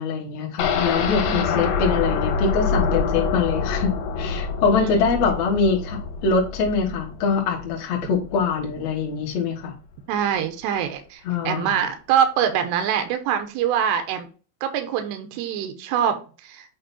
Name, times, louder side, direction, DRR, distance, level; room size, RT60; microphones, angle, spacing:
voice 1, 0.0-9.7 11.2-11.8, left 5 dB, 55° left, -1 dB, 1.9 m, -23 dB
sound 1, 0.6-8.5 8.8-8.9 9.3-9.4, left 5 dB, 75° left, 3.3 m, -26 dB
voice 2, 1.3-1.6 4.8-5.1 10.1-11.2 11.5-14.3 14.6-16.8, right 9 dB, 80° right, 6 dB, 2.6 m, -24 dB
8.6 x 3.0 x 4.2 m, 0.36 s
omnidirectional pair, 5.3 m